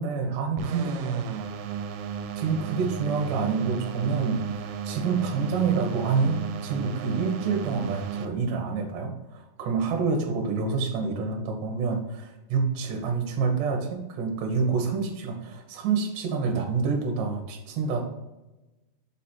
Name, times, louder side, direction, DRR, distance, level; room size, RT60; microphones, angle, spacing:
voice 1, 0.0-1.4 2.4-18.0, right 5 dB, 70° right, 3 dB, 2.2 m, -27 dB
sound 1, 0.6-8.3, right 7 dB, 85° right, 2.6 m, -34 dB
7.1 x 4.1 x 4.3 m, 1.0 s
omnidirectional pair, 4.8 m